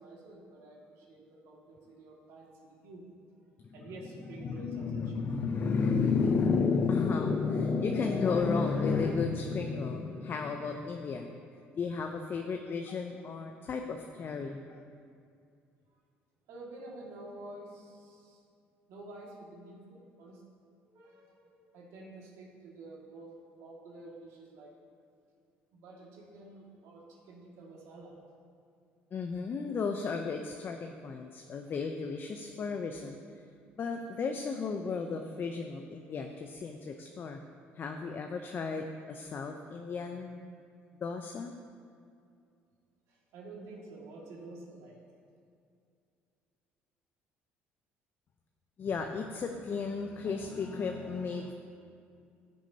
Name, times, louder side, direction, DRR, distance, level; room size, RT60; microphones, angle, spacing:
voice 1, 0.0-3.1 3.7-5.3 16.5-18.4 18.9-20.4 20.8-24.7 25.7-28.2 43.1-45.0, right 2 dB, 75° right, -2 dB, 2.0 m, -49 dB
voice 2, 4.4-11.4 11.8-14.8 29.1-33.2 33.8-37.4 37.7-40.5 41.0-41.5 48.8-51.5, left 5 dB, 45° left, 4 dB, 0.6 m, -33 dB
15.5 x 6.2 x 2.8 m, 2.4 s
supercardioid pair, 80°, 5 cm